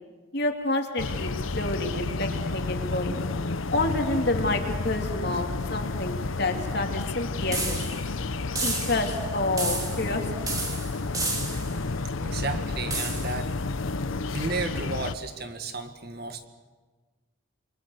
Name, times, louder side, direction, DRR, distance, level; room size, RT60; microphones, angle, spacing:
voice 1, 0.3-3.2 3.7-7.9 8.6-10.3, left 2 dB, 50° left, 3 dB, 3.0 m, -29 dB
sound 1, 1.0-15.1, left 3 dB, 80° left, 0.8 m, -31 dB
sound 2, 7.5-8.1 8.6-9.2 9.6-10.2 10.5-11.8 12.9-13.4, right 2 dB, 15° right, 3.1 m, -31 dB
voice 2, 12.2-13.5 14.3-16.5, right 3 dB, 50° right, 7 dB, 1.8 m, -33 dB
28.5 x 23.5 x 6.7 m, 1.3 s
head